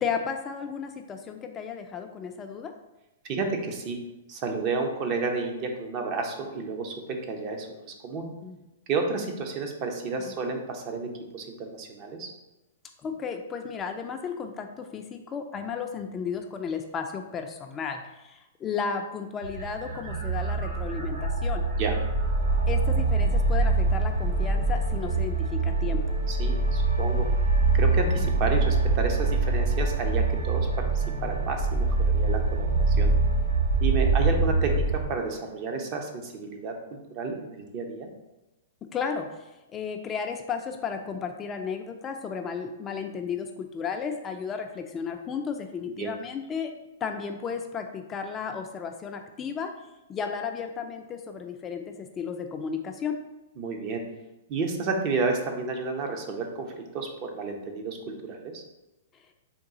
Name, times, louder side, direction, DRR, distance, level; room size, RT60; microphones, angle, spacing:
voice 1, 0.0-2.7 8.4-8.6 10.2-10.3 13.0-21.6 22.7-26.2 28.1-28.3 38.9-39.4 39.7-46.7 47.0-49.7 50.1-53.2, left 6 dB, 25° left, 5 dB, 0.3 m, -34 dB
voice 2, 3.2-4.0 4.3-6.9 7.3-8.3 8.9-11.1 11.3-12.3 21.8-21.9 26.3-27.2 27.7-33.1 33.8-34.8 35.1-36.7 37.2-38.1 45.9-46.1 53.6-54.0 54.5-58.6, right 4 dB, 40° right, 4 dB, 0.6 m, -31 dB
sound 1, 19.4-35.0, right 3 dB, 80° right, 1.1 m, -24 dB
3.7 x 2.3 x 3.8 m, 1.0 s
hypercardioid pair, 120°, 0 cm